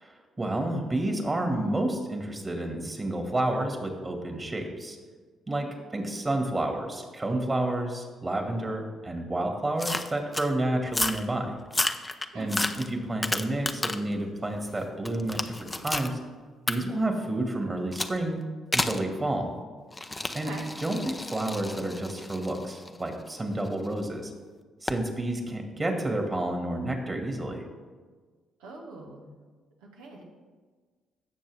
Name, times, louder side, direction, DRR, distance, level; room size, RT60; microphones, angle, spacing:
voice 1, 0.0-5.0 5.5-11.6 12.3-12.6 12.9-16.2 16.7-18.4 18.7-19.6 20.3-20.5 20.8-24.3 24.8-27.7, right 1 dB, 30° right, 3 dB, 2.0 m, -30 dB
sound 1, 9.8-10.5 10.9-11.3 11.7-14.1 14.5-16.1 16.7-16.8 17.9-18.2 18.7-19.0 19.9-23.9 24.9-25.1, left 2 dB, 20° left, 0.7 m, -31 dB
voice 2, 20.3-20.6 28.6-29.3 29.8-30.2, right 3 dB, 85° right, -1 dB, 1.5 m, -43 dB
16.0 x 6.6 x 3.5 m, 1.5 s
hypercardioid pair, 50°, 0 cm